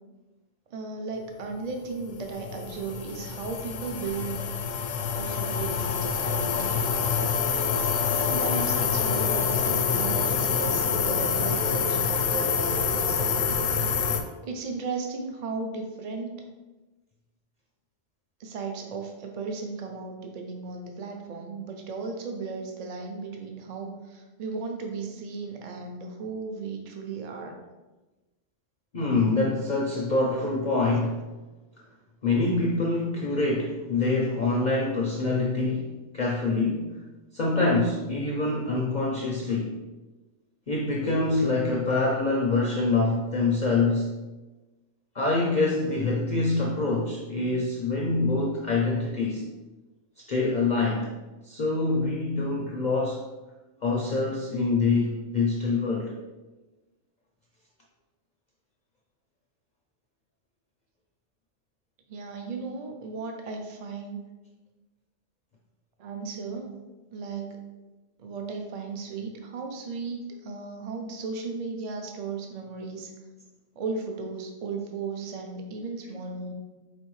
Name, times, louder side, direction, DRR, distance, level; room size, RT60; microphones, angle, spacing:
voice 1, 0.7-4.4 5.1-7.4 8.2-13.4 14.4-16.3 18.4-27.6 62.1-64.2 66.0-66.7 67.1-67.7 68.2-73.1 73.8-76.5, right 4 dB, 45° right, 3 dB, 0.5 m, -35 dB
sound 1, 2.0-14.2, left 6 dB, 80° left, 0.9 m, -26 dB
voice 2, 28.9-31.2 32.2-36.8 37.3-39.7 40.7-44.1 45.1-49.4 50.2-51.1 51.4-53.2 53.8-56.1, left 3 dB, 50° left, -2 dB, 0.5 m, -25 dB
5.1 x 3.2 x 3.1 m, 1.1 s
omnidirectional pair, 1.3 m